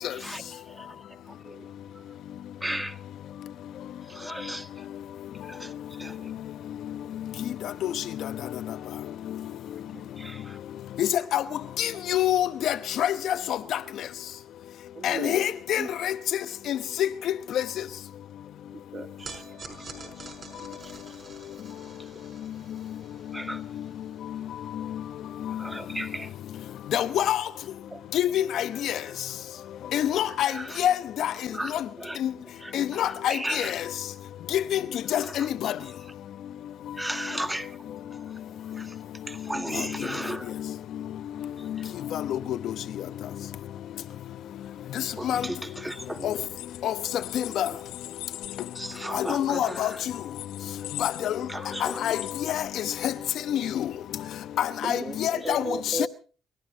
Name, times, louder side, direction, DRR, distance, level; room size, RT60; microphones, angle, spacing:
voice 1, 0.1-1.7 1.9-2.1 2.6-3.0 4.0-4.9 5.4-6.3 10.2-10.6 11.9-12.0 19.7-19.9 20.9-21.0 22.0-22.1 23.3-23.7 25.5-26.3 27.9-28.0 30.0-30.9 31.5-32.2 32.4-33.7 35.1-36.1 36.9-40.6 41.6-42.0 45.1-46.4 47.7-48.0 48.5-50.1 51.5-52.1 52.5-52.7 55.4-55.6, right 1 dB, 10° right, 1.8 m, -37 dB
voice 2, 11.0-11.4 11.8-13.4 15.0-16.1 16.7-17.1 17.5-17.6 26.9-27.4 28.1-29.0 29.9-30.5 30.8-31.3 32.2-32.3 32.7-33.8 34.5-34.8 35.1-35.7 42.1-42.4 45.2-45.4 46.2-46.3 46.8-46.9 47.3-47.7 49.1-49.9 51.0-51.3 51.8-52.2 52.5-52.6 53.0-53.1 53.5-53.8 54.6-55.6 56.0-56.1, left 11 dB, 65° left, 0.9 m, -26 dB
voice 3, 14.9-15.4 15.8-15.9 18.7-19.4 19.7-19.8 20.0-20.3 20.6-20.8 54.8-56.1, right 2 dB, 30° right, 2.0 m, -36 dB
sound 1, 19.2-25.6, right 4 dB, 50° right, 5.5 m, -48 dB
sound 2, 45.7-53.2, left 16 dB, 85° left, 1.2 m, -41 dB
29.5 x 12.0 x 4.0 m
supercardioid pair, 75°, 0 cm